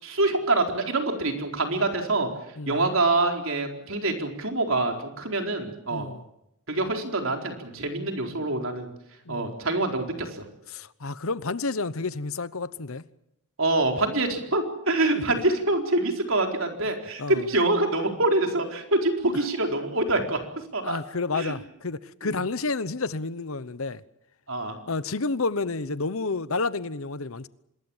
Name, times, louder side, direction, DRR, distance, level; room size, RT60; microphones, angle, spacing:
voice 1, 0.0-2.3 2.7-6.1 6.7-8.9 9.3-10.4 13.6-20.4 20.7-21.0 21.3-21.5 22.2-22.3 24.5-24.8, right 2 dB, 60° right, 4.4 m, -25 dB
voice 2, 5.9-6.2 9.3-9.6 10.7-13.0 16.8-17.5 20.8-24.0 24.9-27.5, left 3 dB, 70° left, 1.0 m, -30 dB
26.0 x 21.0 x 7.4 m
head